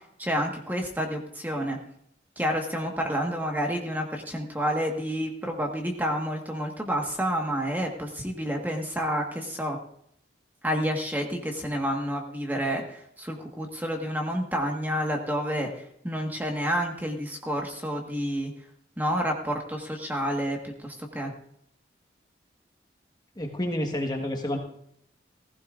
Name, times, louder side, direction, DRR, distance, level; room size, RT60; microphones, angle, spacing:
voice 1, 0.2-1.8 2.4-9.8 10.6-15.7 16.0-18.5 19.0-21.3, equal, 10° right, 1 dB, 1.5 m, -29 dB
voice 2, 23.4-24.6, left 1 dB, 25° left, 2 dB, 1.4 m, -29 dB
15.5 x 15.5 x 2.5 m, 0.71 s
head